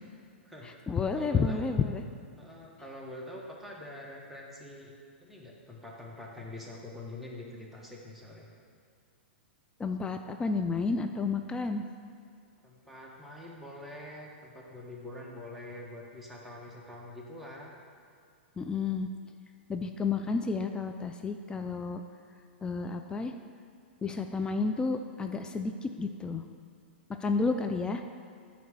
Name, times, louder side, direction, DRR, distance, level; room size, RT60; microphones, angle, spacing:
voice 1, 0.6-2.0 9.8-11.8 18.6-19.1 19.7-22.0 22.6-23.3 24.0-26.4 27.2-28.0, left 4 dB, 15° left, 6 dB, 0.3 m, -31 dB
voice 2, 1.1-1.6 2.4-4.9 5.2-8.5 12.6-17.7, left 1 dB, ahead, -3 dB, 1.3 m, -45 dB
9.2 x 3.1 x 6.1 m, 2.3 s
hypercardioid pair, 115°, 6 cm